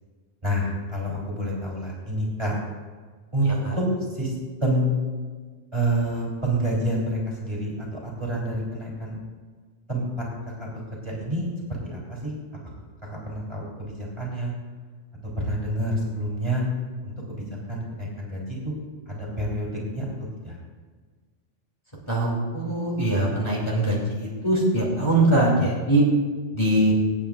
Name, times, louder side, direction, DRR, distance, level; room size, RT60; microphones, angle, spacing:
voice 1, 0.4-2.6 3.3-3.8 4.1-4.3 4.6-4.9 5.7-9.2 9.9-10.3 10.6-11.5 11.8-12.4 13.1-14.5 15.4-16.6 17.0-18.8 19.1-20.1 20.4-20.6, right 1 dB, 20° right, -4 dB, 3.4 m, -28 dB
voice 2, 3.4-3.8 22.1-26.0 26.5-26.9, right 1 dB, 25° left, -6 dB, 2.7 m, -22 dB
25.0 x 8.7 x 2.5 m, 1.5 s
omnidirectional pair, 1.3 m